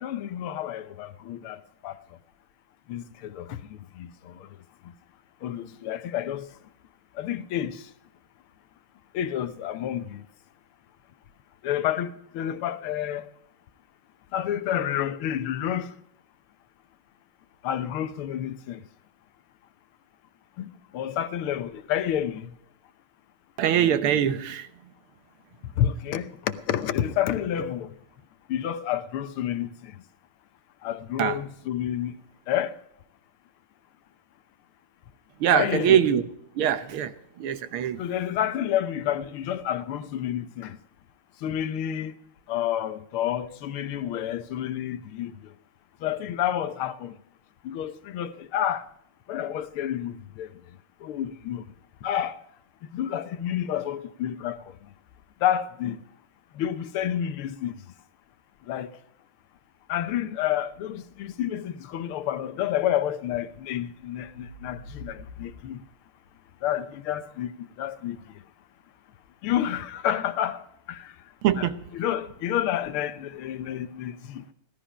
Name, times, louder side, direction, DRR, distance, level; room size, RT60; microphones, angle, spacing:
voice 1, 0.0-2.0 2.9-4.6 4.8-4.9 5.4-6.5 7.1-7.9 9.1-10.2 11.6-13.3 14.3-16.0 17.6-18.8 20.6-22.5 25.8-27.9 28.5-30.0 30.8-32.1 32.5-32.8 35.5-36.0 38.0-40.8 41.4-42.2 42.5-45.5 46.0-47.1 47.6-48.9 49.3-50.5 51.0-51.6 52.0-52.4 52.9-54.8 55.4-56.0 56.5-57.7 58.6-59.0 59.9-65.8 66.6-68.2 69.4-71.2 71.6-74.4, left 10 dB, 85° left, 1.8 m, -29 dB
voice 2, 23.6-24.7 31.2-31.4 35.4-36.2 36.6-38.0 71.4-71.9, right 9 dB, 85° right, 1.9 m, -23 dB
16.5 x 13.0 x 5.0 m
omnidirectional pair, 2.3 m